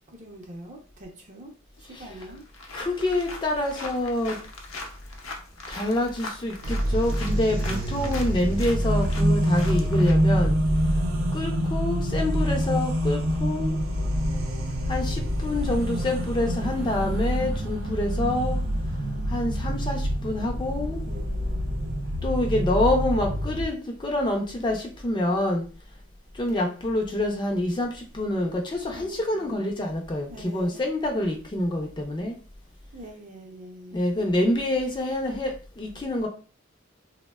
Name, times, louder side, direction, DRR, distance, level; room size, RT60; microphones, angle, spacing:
voice 1, 0.1-1.5 1.8-2.4 21.1-22.1 26.4-26.8 28.9-29.8 30.3-30.9 32.9-34.0, right 1 dB, 35° right, 0.6 m, -43 dB
sound 1, 1.8-1.9 2.2-10.1, left 2 dB, 80° left, 0.6 m, -40 dB
voice 2, 2.7-4.4 5.7-10.6 11.3-13.8 14.9-18.6 19.3-21.0 22.2-25.7 26.4-32.3 33.9-36.3, left 1 dB, 25° left, 0.4 m, -27 dB
sound 2, 6.6-23.7, equal, 90° right, 0.5 m, -26 dB
3.3 x 2.1 x 2.2 m
head